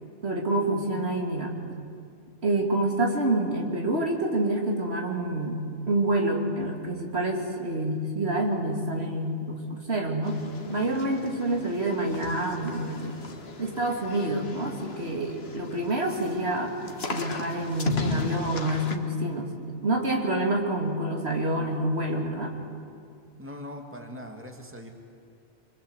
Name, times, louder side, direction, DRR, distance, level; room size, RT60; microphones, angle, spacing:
voice 1, 0.2-1.6 2.4-13.2 13.6-19.5 19.8-22.5, right 1 dB, 70° right, 1 dB, 3.1 m, -27 dB
sound 1, 10.2-19.0, left 4 dB, 65° left, 1.7 m, -37 dB
voice 2, 23.4-24.9, left 1 dB, 10° right, 2 dB, 2.3 m, -41 dB
26.5 x 22.0 x 8.2 m, 2.4 s
omnidirectional pair, 1.1 m